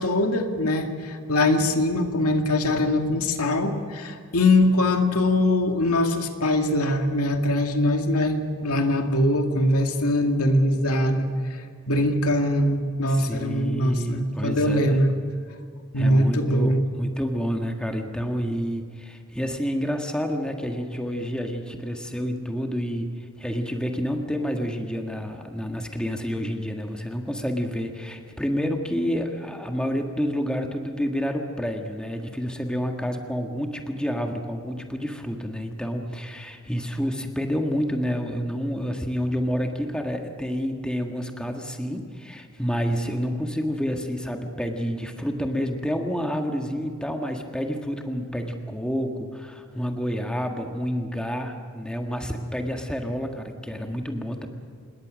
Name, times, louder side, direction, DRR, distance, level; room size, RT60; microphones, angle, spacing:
voice 1, 0.0-11.3 11.9-15.1 15.9-16.8, left 1 dB, 85° left, 5 dB, 2.2 m, -22 dB
voice 2, 13.1-15.0 16.0-23.1 23.4-54.5, equal, 5° left, 3 dB, 1.6 m, -29 dB
27.0 x 21.0 x 6.4 m, 2.2 s
head